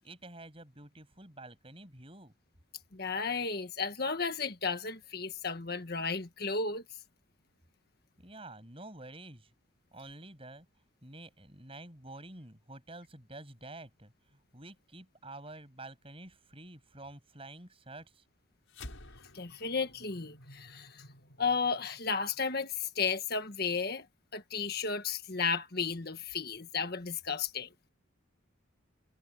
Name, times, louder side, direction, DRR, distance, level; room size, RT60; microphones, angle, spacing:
voice 1, 0.0-2.3 8.2-9.5 9.9-10.7 11.0-18.2, right 2 dB, 25° right, 7.5 m, -49 dB
voice 2, 2.9-6.8 19.3-21.0 21.4-24.0 24.3-27.7, left 5 dB, 50° left, 1.6 m, -33 dB
sound 1, 18.7-23.3, left 1 dB, 80° left, 6.2 m, -53 dB
head